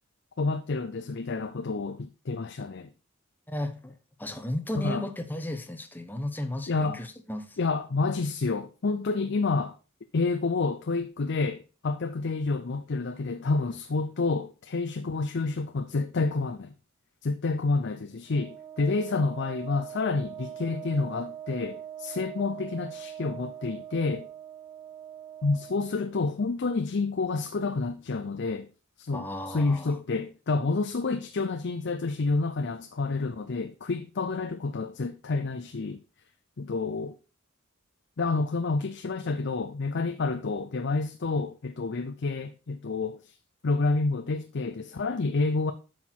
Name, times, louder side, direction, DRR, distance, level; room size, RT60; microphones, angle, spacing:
voice 1, 0.4-2.9 4.8-5.0 6.7-7.0 7.6-9.8 10.1-16.7 17.2-24.3 25.4-28.7 29.0-36.0 36.6-37.2 38.2-43.3 43.6-45.7, left 3 dB, 55° left, 0.5 m, -29 dB
voice 2, 3.5-7.6 29.1-29.9, left 1 dB, 10° left, 0.9 m, -34 dB
Wind instrument woodwind instrument, 18.3-26.1, right 10 dB, 20° right, 0.8 m, -42 dB
8.5 x 6.0 x 4.5 m
head